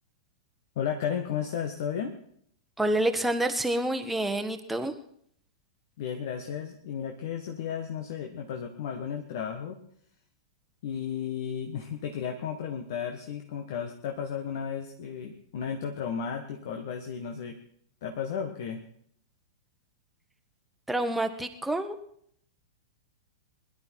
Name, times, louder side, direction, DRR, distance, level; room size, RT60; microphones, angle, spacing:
voice 1, 0.7-2.1 6.0-9.8 10.8-17.6 18.0-18.8, left 7 dB, 55° left, 4 dB, 1.5 m, -34 dB
voice 2, 2.8-4.9 20.9-21.9, right 1 dB, 5° right, 6 dB, 1.4 m, -28 dB
21.5 x 11.5 x 4.7 m, 0.68 s
figure-of-eight pair, 100°, 2 cm